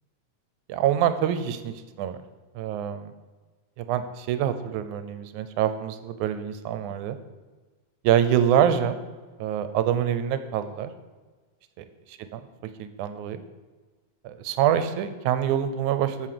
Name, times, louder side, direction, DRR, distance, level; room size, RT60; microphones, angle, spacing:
voice 1, 0.7-2.2 2.6-3.1 3.8-7.2 8.0-9.0 9.4-10.9 11.8-12.4 12.8-13.4 14.3-16.3, right 10 dB, 85° right, 11 dB, 2.1 m, -25 dB
9.0 x 6.5 x 7.6 m, 1.3 s
omnidirectional pair, 3.4 m